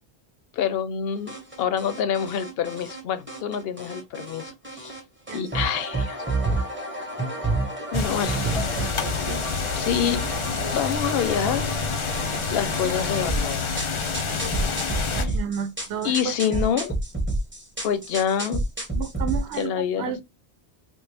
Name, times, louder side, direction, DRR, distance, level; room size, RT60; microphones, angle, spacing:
voice 1, 0.5-4.9 5.3-6.2 7.9-8.5 9.8-10.2 10.5-11.7 12.5-13.7 15.1-15.4 16.0-16.9 17.8-18.6 19.6-20.2, left 8 dB, 65° left, 0.7 m, -27 dB
sound 1, 1.3-3.0 3.3-5.0 5.3-19.6, right 2 dB, 10° right, 0.8 m, -30 dB
sound 2, 7.9-15.3, left 5 dB, 50° left, 0.4 m, -28 dB
voice 2, 15.2-16.8 19.0-19.7 20.0-20.2, right 8 dB, 75° right, 0.8 m, -31 dB
3.5 x 2.1 x 3.3 m
omnidirectional pair, 1.1 m